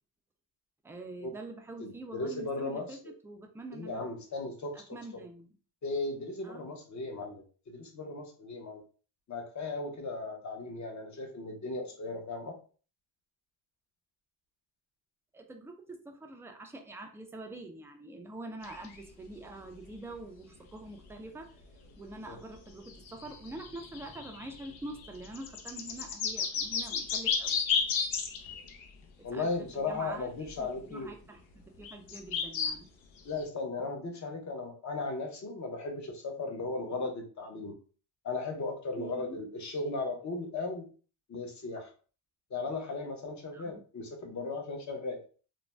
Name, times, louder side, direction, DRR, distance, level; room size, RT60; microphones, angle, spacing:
voice 1, 0.8-4.1 4.7-5.5 6.4-6.7 15.3-21.5 22.0-27.6 29.3-30.3 30.6-32.9 39.0-39.4 43.5-43.8, right 2 dB, 5° right, 3 dB, 0.3 m, -45 dB
voice 2, 1.8-2.9 3.7-4.8 5.8-8.8 9.3-12.5 22.3-22.4 29.2-31.1 33.2-37.8 38.2-40.9 41.3-41.9 42.5-45.2, left 3 dB, 40° left, 3 dB, 0.8 m, -36 dB
sound 1, 18.6-19.0 19.9-20.0 22.2-22.3 22.5-22.6 22.9-28.8 30.5-30.6 31.8-32.7 33.4-33.5, left 6 dB, 80° left, 0.7 m, -33 dB
2.5 x 2.1 x 3.1 m, 0.39 s
cardioid pair, 105°, 47 cm